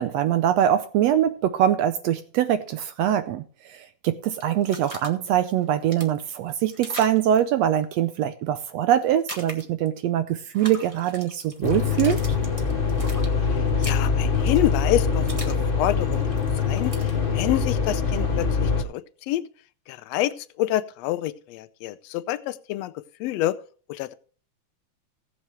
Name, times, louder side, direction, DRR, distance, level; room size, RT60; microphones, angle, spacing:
voice 1, 0.0-3.4 3.7-12.2, right 11 dB, 75° right, 1.7 m, -23 dB
sound 1, 4.4-5.1 5.6-7.4 9.0-9.9 10.5-15.6 15.9-17.2, right 1 dB, 20° right, 1.0 m, -40 dB
sound 2, 11.6-18.8, left 5 dB, 60° left, 0.5 m, -24 dB
voice 2, 13.5-19.4 19.9-23.5 23.9-24.1, left 14 dB, 75° left, 1.6 m, -28 dB
17.5 x 7.6 x 3.2 m
omnidirectional pair, 3.4 m